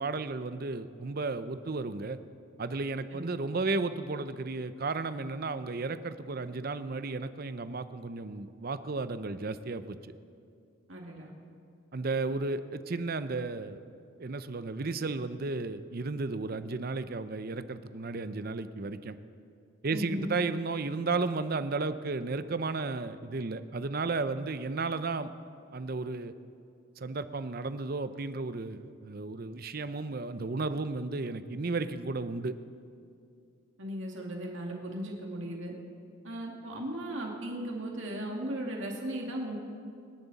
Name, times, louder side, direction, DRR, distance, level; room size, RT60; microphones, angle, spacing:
voice 1, 0.0-2.2 2.6-10.1 11.9-13.8 14.2-19.2 19.8-25.3 25.7-26.3 27.0-32.5, right 3 dB, 45° right, 12 dB, 0.6 m, -33 dB
voice 2, 3.1-3.6 10.9-11.3 19.9-20.3 33.8-35.7 36.2-39.6, right 1 dB, 65° right, 0 dB, 2.2 m, -37 dB
26.5 x 11.0 x 4.1 m, 2.4 s
head